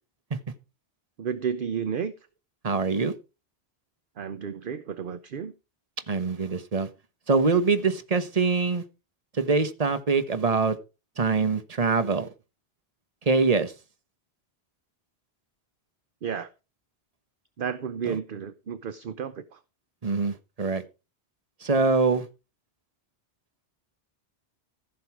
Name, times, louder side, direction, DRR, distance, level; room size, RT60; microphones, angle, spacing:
voice 1, 1.2-2.1 4.2-5.5 16.2-16.5 17.6-19.4, right 7 dB, 55° right, 0.8 m, -32 dB
voice 2, 2.6-3.1 6.1-6.9 7.3-8.8 9.4-10.7 11.2-12.3 13.3-13.7 18.0-18.1 20.0-20.8 21.6-22.3, right 4 dB, 35° right, 1.2 m, -24 dB
15.0 x 6.6 x 4.6 m
omnidirectional pair, 1.1 m